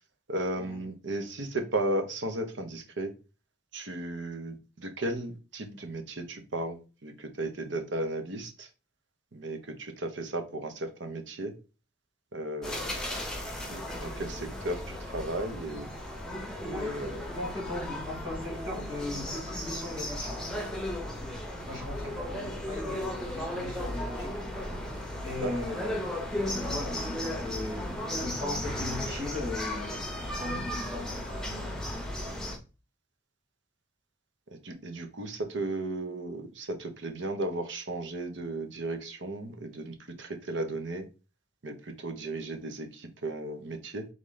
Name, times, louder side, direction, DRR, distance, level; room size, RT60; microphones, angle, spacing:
voice 1, 0.3-3.1 3.7-8.7 9.3-11.5 12.3-13.0 13.5-15.9 16.6-17.2 25.3-25.5 34.5-41.1 41.6-44.1, right 2 dB, 65° right, 6 dB, 0.8 m, -35 dB
sound 1, 12.6-32.6, left 1 dB, 5° left, 0.7 m, -35 dB
voice 2, 16.6-20.4 21.7-24.4 25.2-26.0 26.5-31.2, left 2 dB, 25° right, -3 dB, 2.3 m, -38 dB
3.9 x 3.1 x 3.9 m, 0.32 s
head